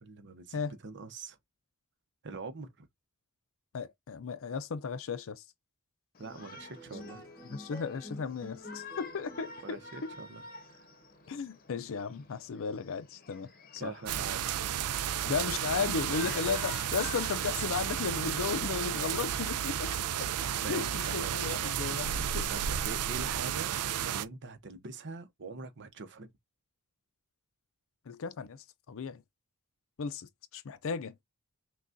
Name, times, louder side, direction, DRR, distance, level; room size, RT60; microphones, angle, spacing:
voice 1, 0.0-1.4 2.2-2.9 6.2-7.2 9.6-10.4 10.7-10.8 13.8-14.6 18.2-18.3 20.6-22.1 22.5-26.3, right 4 dB, 55° right, 0.8 m, -44 dB
voice 2, 3.7-5.4 7.5-10.1 11.3-13.9 15.2-20.3 20.7-22.5 28.1-29.2 30.0-31.1, left 5 dB, 65° left, 0.5 m, -35 dB
Shout, 6.1-18.3, left 4 dB, 40° left, 0.9 m, -50 dB
sound 1, 6.2-12.8, left 1 dB, 15° left, 1.3 m, -50 dB
sound 2, 14.1-24.2, right 9 dB, 90° right, 0.4 m, -32 dB
5.9 x 2.3 x 2.5 m
head